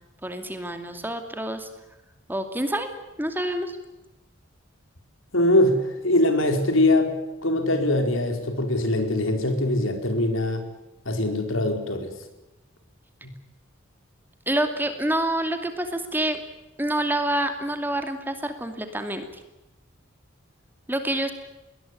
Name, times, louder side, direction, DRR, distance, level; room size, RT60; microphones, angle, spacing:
voice 1, 0.2-1.7 2.3-2.9 3.2-3.8 14.5-16.4 16.8-19.2 20.9-21.3, right 1 dB, 10° right, 7 dB, 2.5 m, -27 dB
voice 2, 5.3-7.1 7.4-10.6 11.0-12.1 13.2-13.3, left 1 dB, 80° left, 6 dB, 4.7 m, -22 dB
21.5 x 19.5 x 9.9 m, 0.99 s
head